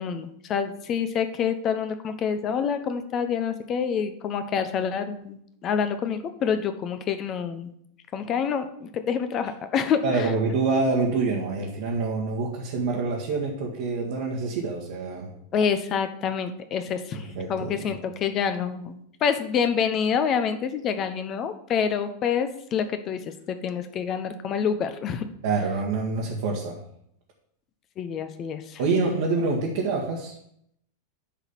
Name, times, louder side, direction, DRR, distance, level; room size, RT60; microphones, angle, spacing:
voice 1, 0.0-7.7 8.1-10.3 15.5-18.9 19.2-25.3 28.0-28.8, left 7 dB, 30° left, 10 dB, 0.9 m, -27 dB
voice 2, 10.0-15.3 17.1-17.9 25.4-26.7 28.8-30.4, right 3 dB, 55° right, -3 dB, 1.6 m, -26 dB
10.0 x 4.1 x 7.0 m, 0.72 s
figure-of-eight pair, 90°, 0 cm